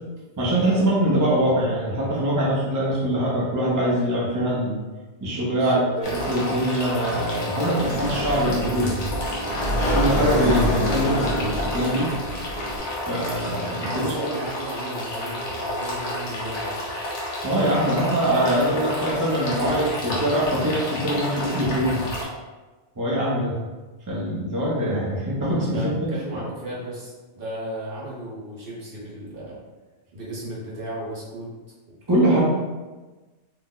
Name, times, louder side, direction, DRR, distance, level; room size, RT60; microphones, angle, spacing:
voice 1, 0.4-4.8 5.2-9.0 9.9-12.1 13.1-14.3 17.4-22.0 23.0-23.6 24.1-26.4 32.1-32.4, right 1 dB, 25° right, -6 dB, 0.4 m, -23 dB
voice 2, 5.5-6.2 13.8-16.9 25.7-29.6 30.1-31.5 32.2-32.4, right 1 dB, 55° right, -6 dB, 1.0 m, -35 dB
sound 1, 6.0-22.2, left 1 dB, 75° left, 1.0 m, -30 dB
Sliding door, 7.8-12.8, equal, 55° left, 0.4 m, -26 dB
2.8 x 2.0 x 3.6 m, 1.2 s
omnidirectional pair, 1.2 m